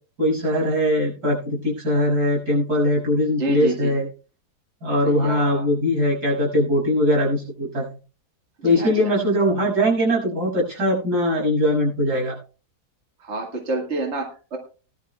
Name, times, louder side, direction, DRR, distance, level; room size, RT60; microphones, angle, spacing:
voice 1, 0.2-4.1 4.8-7.9 8.6-12.4, left 1 dB, 90° right, -4 dB, 7.0 m, -21 dB
voice 2, 3.4-3.9 5.0-5.7 8.6-9.2 13.2-14.6, right 2 dB, 45° right, 2 dB, 2.0 m, -28 dB
19.0 x 12.0 x 2.2 m, 0.37 s
omnidirectional pair, 1.7 m